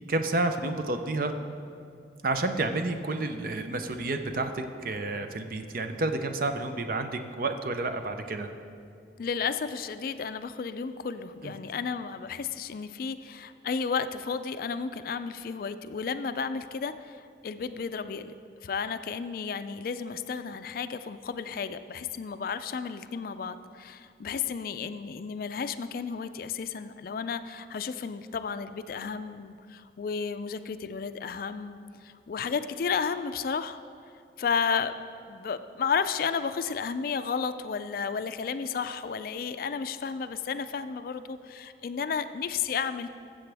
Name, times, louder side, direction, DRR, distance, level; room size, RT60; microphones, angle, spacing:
voice 1, 0.1-1.3 2.2-8.5 11.4-11.5, right 2 dB, 50° right, 7 dB, 0.6 m, -30 dB
voice 2, 9.2-18.3 18.6-33.8 34.4-35.0 35.3-43.1, left 6 dB, 55° left, 11 dB, 0.3 m, -32 dB
14.0 x 7.7 x 3.4 m, 2.5 s
head